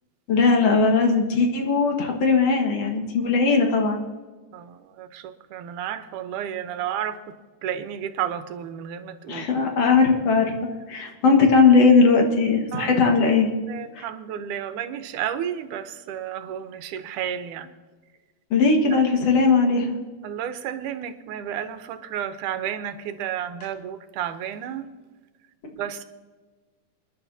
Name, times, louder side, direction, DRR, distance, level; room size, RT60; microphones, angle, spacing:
voice 1, 0.3-4.0 9.3-10.5 10.9-13.5 14.0-14.1 18.5-19.9, left 4 dB, 60° left, 2 dB, 2.6 m, -19 dB
voice 2, 4.5-7.4 7.6-9.6 10.3-10.4 12.7-13.0 13.6-17.7 18.9-19.0 20.2-24.9 25.7-26.0, right 9 dB, 90° right, 10 dB, 2.4 m, -32 dB
28.0 x 11.0 x 2.8 m, 1.4 s
omnidirectional pair, 3.5 m